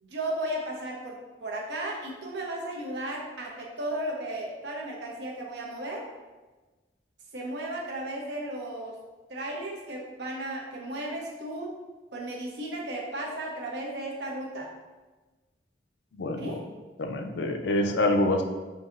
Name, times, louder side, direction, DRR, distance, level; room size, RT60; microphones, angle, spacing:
voice 1, 0.0-6.0 7.3-8.9 9.3-11.7 12.1-14.7 16.4-16.6, right 1 dB, 70° right, -1 dB, 0.8 m, -35 dB
voice 2, 16.1-16.6 17.0-18.4, left 1 dB, 75° left, 4 dB, 0.4 m, -26 dB
5.5 x 2.6 x 2.5 m, 1.2 s
head